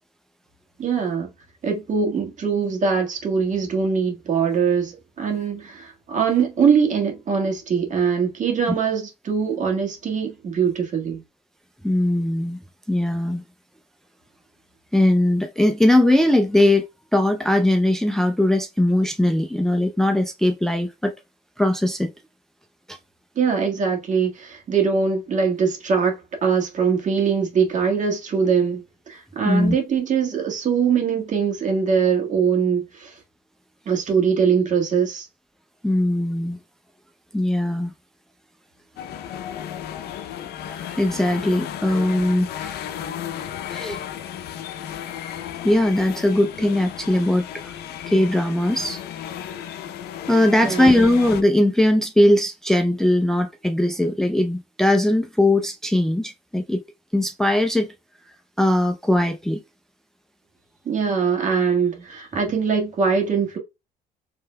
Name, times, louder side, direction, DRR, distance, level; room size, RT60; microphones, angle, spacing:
voice 1, 0.8-1.3 1.6-11.2 23.3-33.2 33.8-35.3 50.6-51.0 60.8-63.6, right 6 dB, 45° right, 1.7 m, -22 dB
voice 2, 11.8-12.6 12.9-13.4 14.9-16.9 17.1-21.1 21.6-22.1 22.9-23.0 29.4-29.8 35.8-36.6 37.3-37.9 40.7-42.8 43.7-44.0 45.6-47.8 48.1-49.0 49.5-49.7 50.3-56.8 57.1-57.9 58.6-59.6, left 1 dB, 5° left, 0.5 m, -20 dB
sound 1, 39.0-51.4, left 10 dB, 75° left, 0.6 m, -34 dB
5.4 x 3.2 x 2.2 m
cardioid pair, 110°, 17 cm